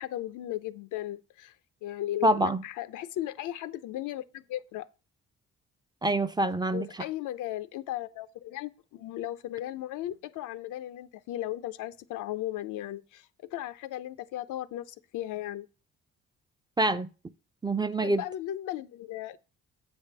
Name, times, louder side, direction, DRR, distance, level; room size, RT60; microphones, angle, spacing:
voice 1, 0.0-1.5 1.8-4.9 6.7-15.7 18.0-19.4, left 13 dB, 85° left, 0.6 m, -36 dB
voice 2, 2.2-2.6 6.0-6.9 16.8-17.1 17.6-18.2, right 1 dB, 15° right, 0.5 m, -25 dB
7.9 x 3.6 x 6.5 m
cardioid pair, 90°, 30 cm